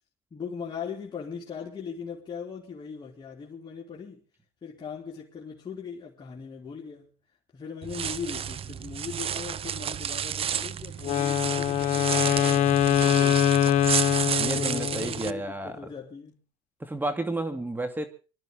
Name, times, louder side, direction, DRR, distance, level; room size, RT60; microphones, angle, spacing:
voice 1, 0.3-4.2 4.6-7.1 7.5-13.8 14.5-16.4, left 6 dB, 30° left, 3.6 m, -39 dB
sound 1, 7.8-15.3, right 9 dB, 40° right, 0.9 m, -31 dB
Wind instrument woodwind instrument, 11.0-15.2, left 11 dB, 60° left, 1.2 m, -23 dB
voice 2, 14.4-15.8 16.8-18.1, right 2 dB, 15° right, 2.4 m, -31 dB
26.0 x 12.5 x 3.9 m
supercardioid pair, 95°, 14 cm